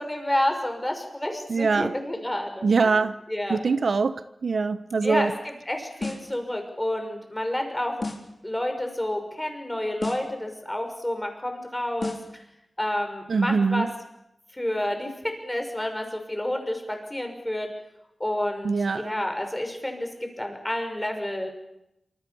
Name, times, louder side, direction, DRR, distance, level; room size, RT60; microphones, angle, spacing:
voice 1, 0.0-3.0 3.3-3.6 5.0-8.0 8.4-12.2 12.8-13.9 14.5-17.7 18.2-21.5, left 1 dB, 10° left, 5.9 m, -29 dB
voice 2, 1.5-1.9 2.6-3.2 3.5-5.3 13.3-13.9 18.6-19.1, right 4 dB, 65° right, 1.0 m, -23 dB
sound 1, 6.0-6.4 8.0-8.4 10.0-10.4 12.0-12.4, left 2 dB, 40° left, 4.3 m, -33 dB
27.0 x 26.5 x 7.1 m
wide cardioid pair, 115°, 0 cm